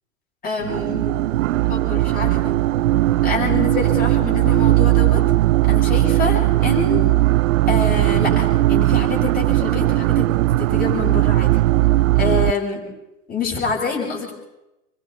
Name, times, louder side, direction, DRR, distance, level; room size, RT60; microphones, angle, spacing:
voice 1, 0.4-1.2 1.7-2.5 3.2-5.2 5.7-7.1 7.7-10.3 10.6-11.5 12.1-12.8 13.3-14.3, left 5 dB, 20° left, -3 dB, 7.8 m, -26 dB
sound 1, 0.6-12.5, right 16 dB, 60° right, 0.7 m, -18 dB
27.5 x 24.5 x 4.3 m, 0.93 s
hypercardioid pair, 120°, 44 cm